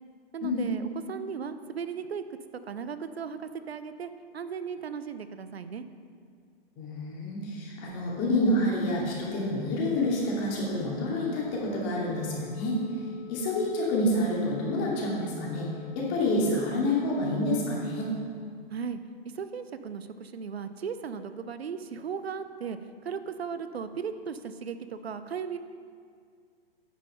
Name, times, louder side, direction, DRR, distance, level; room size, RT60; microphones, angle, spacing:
voice 1, 0.3-2.2 2.7-5.9 18.7-19.0 19.3-22.8 23.0-25.6, right 6 dB, 85° right, 11 dB, 0.6 m, -36 dB
voice 2, 6.8-12.8 13.3-15.7 15.9-18.1, left 1 dB, 35° left, -4 dB, 2.6 m, -28 dB
Telephone, 9.8-18.1, left 9 dB, 65° left, 1.3 m, -47 dB
9.5 x 5.6 x 5.5 m, 2.1 s
hypercardioid pair, 120°, 30 cm